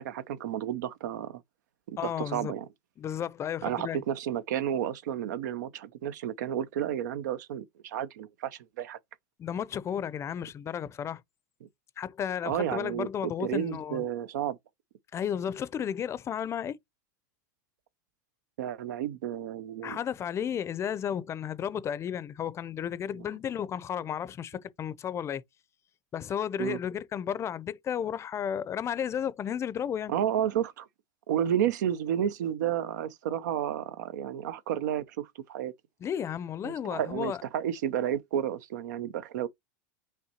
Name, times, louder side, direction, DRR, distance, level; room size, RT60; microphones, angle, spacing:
voice 1, 0.0-1.4 1.9-2.7 3.6-9.0 12.4-14.6 18.6-20.0 26.6-26.8 30.1-30.9 31.3-35.7 36.6-39.5, right 10 dB, 75° right, 0.6 m, -31 dB
voice 2, 2.0-2.5 3.0-4.0 9.4-11.2 12.0-14.0 15.1-16.8 19.8-25.4 26.1-30.1 36.0-37.4, left 9 dB, 30° left, 0.5 m, -33 dB
5.7 x 3.2 x 2.9 m
hypercardioid pair, 110°, 10 cm